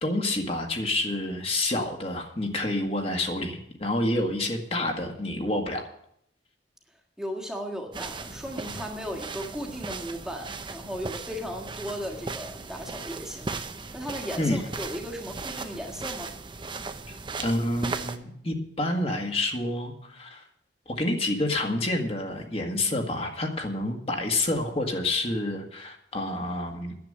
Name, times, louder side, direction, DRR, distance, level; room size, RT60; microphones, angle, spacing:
voice 1, 0.0-5.9 14.4-14.6 17.1-20.4 20.9-27.0, left 1 dB, 35° left, 2 dB, 1.9 m, -28 dB
voice 2, 7.2-13.5 13.9-16.3, equal, 5° right, 1 dB, 1.6 m, -36 dB
sound 1, 7.9-18.2, right 3 dB, 25° right, 0.8 m, -37 dB
10.5 x 8.1 x 9.0 m, 0.71 s
head